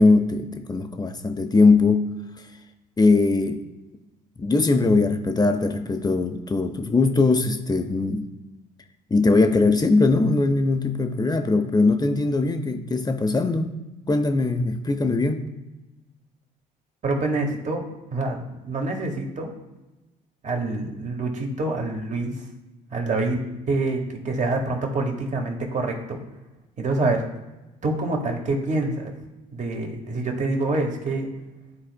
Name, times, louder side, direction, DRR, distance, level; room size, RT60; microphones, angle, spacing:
voice 1, 0.0-2.1 3.0-3.6 4.4-8.3 9.1-13.7 14.1-15.4, left 3 dB, 20° left, 7 dB, 0.8 m, -20 dB
voice 2, 17.0-19.5 20.4-22.3 22.9-23.4 23.7-26.2 26.8-27.2 27.8-29.1 29.5-31.3, right 2 dB, 40° right, 2 dB, 1.7 m, -26 dB
11.5 x 4.1 x 2.2 m, 1.1 s
hypercardioid pair, 55°, 20 cm